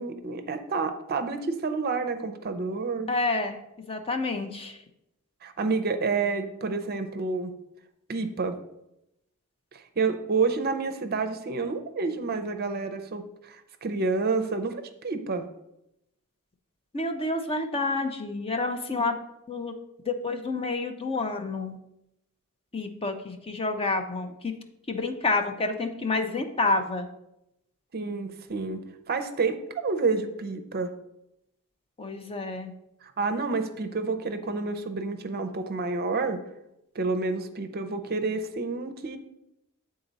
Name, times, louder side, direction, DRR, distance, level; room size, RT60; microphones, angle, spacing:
voice 1, 0.0-3.1 5.4-7.5 8.1-8.6 9.7-15.5 26.3-26.4 27.9-28.8 29.1-30.9 33.2-36.4 36.9-39.2, right 4 dB, 45° right, 8 dB, 0.5 m, -29 dB
voice 2, 3.1-3.6 3.9-4.8 16.9-19.2 19.5-19.7 20.1-21.8 22.7-24.5 24.9-27.1 32.0-32.7, left 3 dB, 25° left, 5 dB, 0.6 m, -29 dB
8.4 x 3.9 x 4.0 m, 0.85 s
head